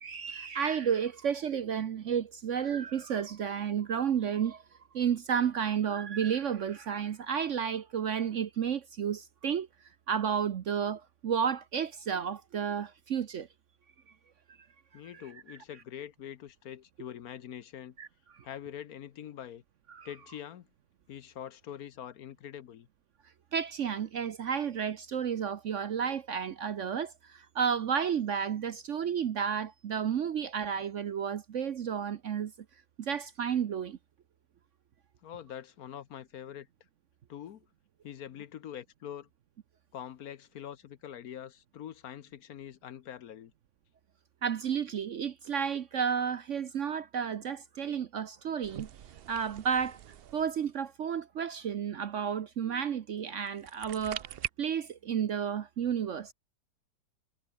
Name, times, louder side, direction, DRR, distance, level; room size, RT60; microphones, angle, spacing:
voice 1, 0.0-4.6 4.9-9.7 10.1-13.5 15.1-15.2 18.0-18.1 18.4-18.5 19.9-20.1 23.5-32.5 33.0-34.0 44.4-48.9 49.3-50.0 50.3-56.3, right 7 dB, 55° right, 1.0 m, -32 dB
voice 2, 14.9-18.0 18.4-19.6 20.0-20.7 21.1-22.9 35.2-36.7 37.3-37.6 38.0-39.3 39.9-43.5, left 10 dB, 65° left, 1.2 m, -44 dB
sound 1, 48.6-50.8 53.5-54.5, right 10 dB, 85° right, 0.5 m, -42 dB
omnidirectional pair, 1.8 m